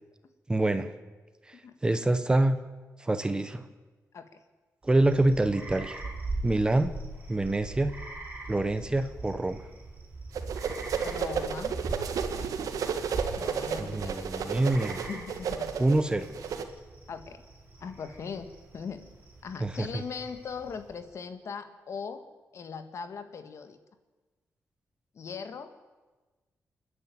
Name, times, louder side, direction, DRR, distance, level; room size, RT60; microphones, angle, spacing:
voice 1, 0.5-0.9 1.5-1.6 1.8-2.6 3.0-3.7 4.8-6.0 6.4-6.9 7.3-8.0 8.5-9.6 13.8-15.0 15.8-16.3 19.6-19.9, right 2 dB, 15° right, 11 dB, 0.9 m, -26 dB
sound 1, 4.8-21.1, right 3 dB, 30° right, 5.4 m, -41 dB
sound 2, 10.3-16.6, right 7 dB, 80° right, 1.6 m, -32 dB
voice 2, 11.0-11.8 12.3-12.5 13.4-14.4 15.1-15.7 17.1-17.4 17.8-19.0 19.4-22.2 22.5-23.8 25.1-25.7, left 6 dB, 55° left, 9 dB, 1.7 m, -40 dB
29.0 x 9.8 x 9.2 m, 1.3 s
wide cardioid pair, 155°, 6 cm